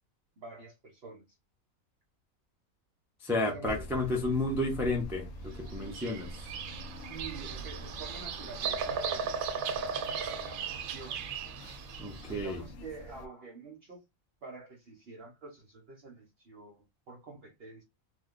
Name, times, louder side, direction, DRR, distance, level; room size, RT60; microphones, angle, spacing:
voice 1, 0.4-1.4 3.4-4.2 7.0-11.2 12.3-14.0 14.4-17.8, right 3 dB, 50° right, 0.9 m, -47 dB
voice 2, 3.2-6.4 12.0-12.6, left 2 dB, 5° right, 0.4 m, -32 dB
sound 1, 3.6-13.3, equal, 70° left, 0.9 m, -45 dB
Bird vocalization bird call bird song, 5.7-12.3, right 6 dB, 80° right, 1.0 m, -37 dB
2.9 x 2.2 x 3.6 m
omnidirectional pair, 1.5 m